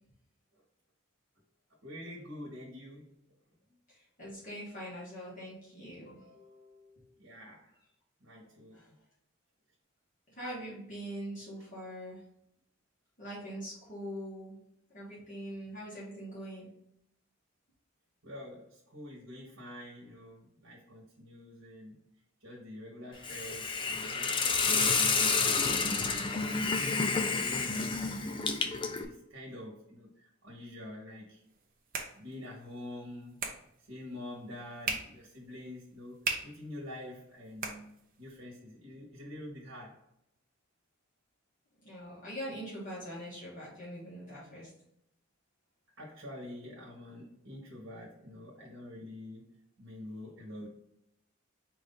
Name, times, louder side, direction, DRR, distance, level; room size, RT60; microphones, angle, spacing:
voice 1, 1.8-3.2 7.2-7.7 8.2-8.8 11.5-11.6 18.2-22.0 22.4-25.7 26.4-31.4 32.1-33.4 33.9-36.2 36.4-37.9 38.2-40.0 46.0-50.7, left 1 dB, 75° right, -3 dB, 1.3 m, -46 dB
voice 2, 3.9-7.0 8.7-8.9 10.3-12.2 13.2-14.6 14.9-16.7 41.8-44.7, equal, 40° left, -8 dB, 1.6 m, -43 dB
Hiss, 23.2-29.0, left 4 dB, 25° left, 0.4 m, -29 dB
sound 1, 31.4-38.4, right 4 dB, 45° right, 0.7 m, -42 dB
4.6 x 2.7 x 3.8 m, 0.77 s
head